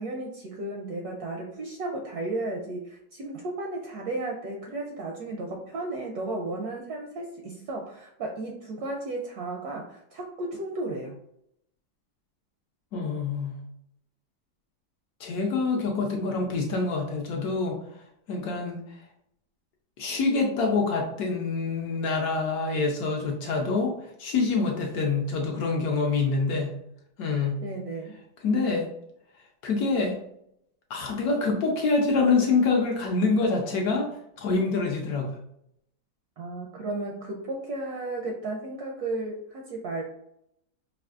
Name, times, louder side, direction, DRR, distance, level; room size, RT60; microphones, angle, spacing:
voice 1, 0.0-11.2 27.6-28.2 36.4-40.0, right 2 dB, 70° right, 1 dB, 0.9 m, -34 dB
voice 2, 12.9-13.6 15.2-17.8 18.3-18.8 20.0-23.9 24.2-26.7 27.2-27.6 28.4-28.9 29.6-30.2 30.9-34.1 34.4-35.3, left 4 dB, 70° left, 1 dB, 1.0 m, -26 dB
4.9 x 2.5 x 2.4 m, 0.75 s
omnidirectional pair, 2.0 m